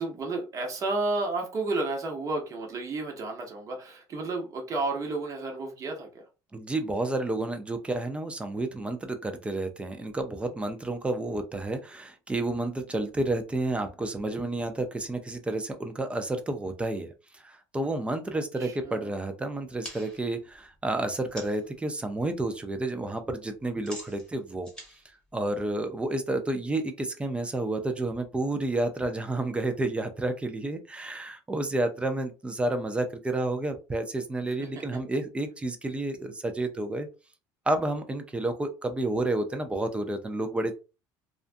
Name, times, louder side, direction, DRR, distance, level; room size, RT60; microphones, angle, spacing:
voice 1, 0.0-6.3 18.3-19.2 34.7-34.8, right 3 dB, 40° right, 2 dB, 1.0 m, -32 dB
voice 2, 6.5-24.7 25.3-37.1 37.7-40.7, right 2 dB, 15° right, 7 dB, 0.5 m, -30 dB
sound 1, 19.7-21.7 22.1-22.6 22.8-26.1, equal, 10° left, 1.1 m, -47 dB
2.4 x 2.2 x 2.5 m, 0.31 s
supercardioid pair, 100°, 9 cm